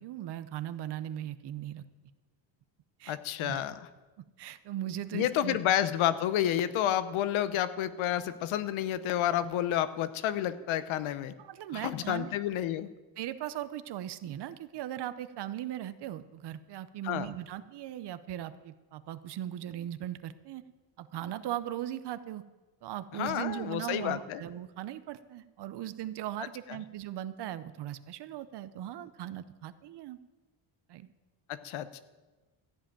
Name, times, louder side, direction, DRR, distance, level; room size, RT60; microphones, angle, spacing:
voice 1, 0.0-1.8 3.0-3.6 4.2-5.6 11.4-12.3 13.2-20.6 21.0-22.4 22.8-30.2 30.9-31.1, right 12 dB, 55° right, 13 dB, 0.8 m, -38 dB
voice 2, 3.1-3.8 5.1-11.3 11.7-12.9 17.0-17.3 23.1-24.4 31.5-32.0, left 11 dB, 75° left, 14 dB, 0.9 m, -30 dB
14.0 x 7.6 x 8.8 m, 1.2 s
cardioid pair, 160°, 48 cm